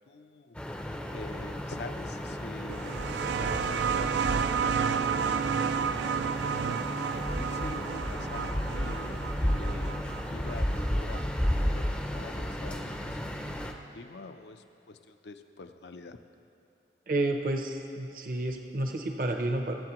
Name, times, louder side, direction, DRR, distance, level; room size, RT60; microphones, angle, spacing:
voice 1, 0.1-0.6 1.1-4.1 4.6-6.8 7.1-11.2 11.6-16.2, left 3 dB, 75° left, 8 dB, 0.6 m, -46 dB
sound 1, 0.5-13.7, equal, 5° left, 0.5 m, -33 dB
sound 2, 2.7-12.0 13.1-13.2, right 7 dB, 80° right, 0.3 m, -32 dB
voice 2, 17.1-19.7, right 2 dB, 50° right, 4 dB, 0.7 m, -30 dB
22.5 x 7.6 x 3.0 m, 2.7 s
head